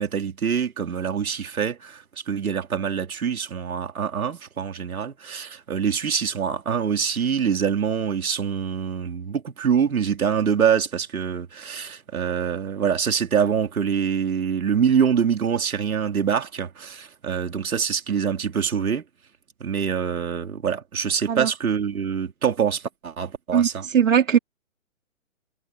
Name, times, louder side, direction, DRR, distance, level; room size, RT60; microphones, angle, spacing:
voice 1, 0.0-19.0 19.6-23.8, right 7 dB, 85° right, 3.1 m, -25 dB
voice 2, 23.5-24.4, right 8 dB, 65° right, 2.6 m, -19 dB
hypercardioid pair, 180°, 42 cm